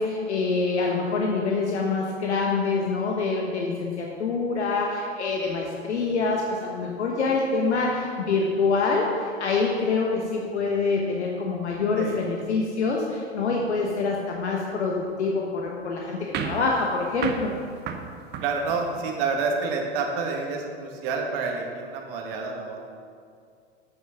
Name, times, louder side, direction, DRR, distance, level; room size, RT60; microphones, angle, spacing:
voice 1, 0.0-17.5, left 4 dB, 80° left, -1 dB, 1.1 m, -26 dB
sound 1, 16.3-19.2, right 6 dB, 30° right, 0.8 m, -34 dB
voice 2, 18.4-22.9, right 4 dB, 55° right, 2 dB, 1.7 m, -28 dB
8.6 x 6.0 x 5.6 m, 2.3 s
hypercardioid pair, 95°, 34 cm